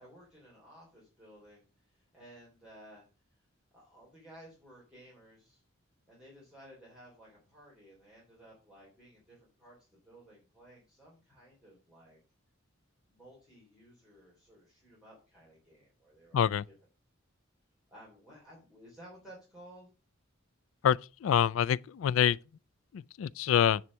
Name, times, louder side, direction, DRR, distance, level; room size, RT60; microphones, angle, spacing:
voice 1, 0.0-3.1 3.7-5.6 6.1-12.2 13.1-16.7 17.9-19.9, right 1 dB, 5° right, 3.3 m, -56 dB
voice 2, 16.3-16.6 20.8-22.4 22.9-23.8, left 9 dB, 75° left, 0.3 m, -26 dB
9.7 x 4.4 x 6.0 m
head